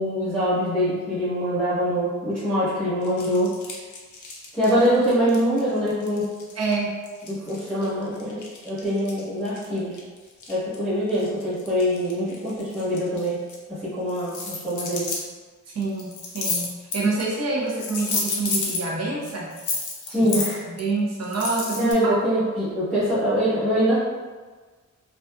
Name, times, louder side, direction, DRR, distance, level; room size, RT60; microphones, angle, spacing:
voice 1, 0.0-3.5 4.5-6.2 7.3-8.4 8.6-9.9 10.5-13.4 13.7-15.1 20.1-20.7 21.7-24.0, equal, 5° left, -15 dB, 1.1 m, -24 dB
sound 1, 3.0-6.7 7.0-10.8 11.1-13.6 14.1-15.2 15.8-17.4 17.7-18.8 19.2-20.8 21.2-21.9, left 3 dB, 75° left, 0.5 m, -31 dB
voice 2, 6.6-7.0 15.7-19.6 20.2-20.3 20.7-22.2, right 3 dB, 60° right, -3 dB, 0.6 m, -27 dB
2.5 x 2.4 x 2.2 m, 1.4 s
wide cardioid pair, 150°, 30 cm